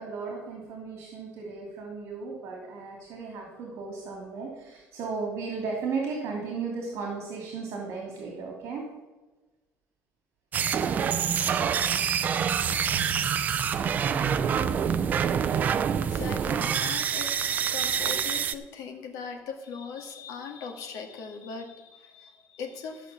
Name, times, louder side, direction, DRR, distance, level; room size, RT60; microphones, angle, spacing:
voice 1, 0.0-8.8, right 4 dB, 50° right, 0 dB, 2.6 m, -35 dB
sound 1, 10.5-18.5, right 7 dB, 30° right, 0.5 m, -26 dB
voice 2, 16.0-23.1, left 5 dB, 85° left, 4 dB, 2.0 m, -40 dB
14.0 x 6.3 x 6.9 m, 1.2 s
cardioid pair, 180°, 6 cm